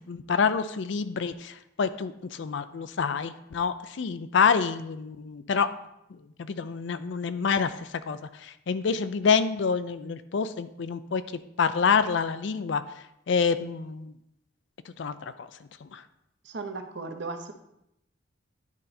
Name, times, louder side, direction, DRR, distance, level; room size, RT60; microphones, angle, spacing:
voice 1, 0.1-5.7 6.4-11.2 11.6-12.8 13.3-14.1 15.0-15.5 15.8-16.0, left 5 dB, 65° left, 12 dB, 0.4 m, -27 dB
voice 2, 16.4-17.5, right 3 dB, 60° right, 7 dB, 0.7 m, -36 dB
9.8 x 3.9 x 4.2 m, 0.82 s
head